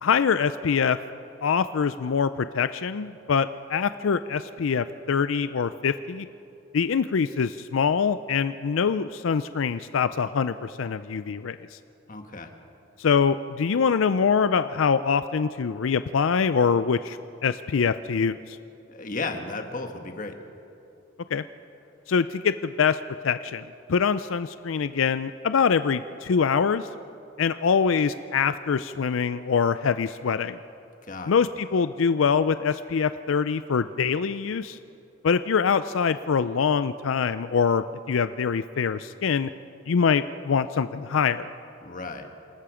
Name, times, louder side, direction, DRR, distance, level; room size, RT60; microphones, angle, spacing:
voice 1, 0.0-1.0 1.4-6.3 6.7-11.8 13.0-18.6 21.3-21.4 22.1-26.9 27.4-30.6 31.3-34.8 35.2-39.5 39.9-41.5, left 6 dB, 85° left, 12 dB, 0.5 m, -24 dB
voice 2, 12.1-12.5 18.9-20.4 31.1-31.3 41.8-42.3, left 3 dB, 40° left, 5 dB, 1.5 m, -34 dB
27.5 x 19.5 x 5.0 m, 2.8 s
head